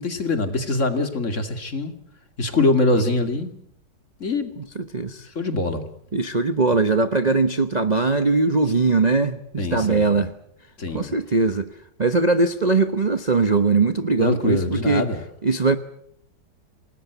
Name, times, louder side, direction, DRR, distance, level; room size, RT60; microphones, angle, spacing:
voice 1, 0.0-1.9 2.4-3.5 4.2-4.5 5.4-5.9 9.6-10.2 10.8-11.1 14.2-15.2, left 2 dB, 40° left, 7 dB, 2.6 m, -23 dB
voice 2, 4.6-5.3 6.1-10.3 10.9-15.1 15.4-15.8, right 3 dB, 30° right, 9 dB, 0.9 m, -21 dB
28.0 x 19.5 x 8.1 m, 0.73 s
omnidirectional pair, 2.0 m